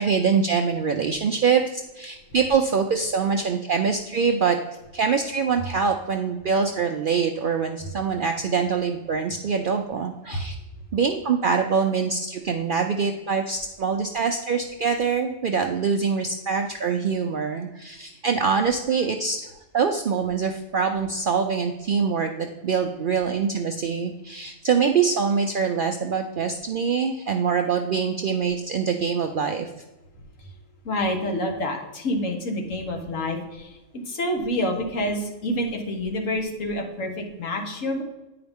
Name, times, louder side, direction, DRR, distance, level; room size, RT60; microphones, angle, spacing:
voice 1, 0.0-4.6 4.9-10.6 10.9-19.5 19.7-29.7, right 6 dB, 70° right, 4 dB, 0.5 m, -24 dB
voice 2, 30.8-33.8 34.1-38.0, left 1 dB, 70° left, 3 dB, 1.5 m, -27 dB
9.4 x 4.8 x 3.5 m, 1.0 s
omnidirectional pair, 1.4 m